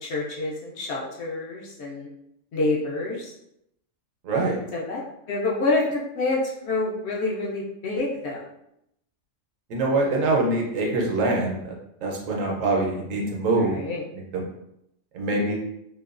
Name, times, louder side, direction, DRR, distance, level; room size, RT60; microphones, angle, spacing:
voice 1, 0.0-2.1 2.5-3.3 4.7-5.0 5.3-8.4 13.2-14.0, left 2 dB, 65° left, -3 dB, 0.7 m, -27 dB
voice 2, 4.2-4.6 9.7-11.7 12.0-13.8 14.1-14.4 15.1-15.6, right 2 dB, 75° right, -1 dB, 1.0 m, -24 dB
2.9 x 2.2 x 2.4 m, 0.79 s
omnidirectional pair, 1.4 m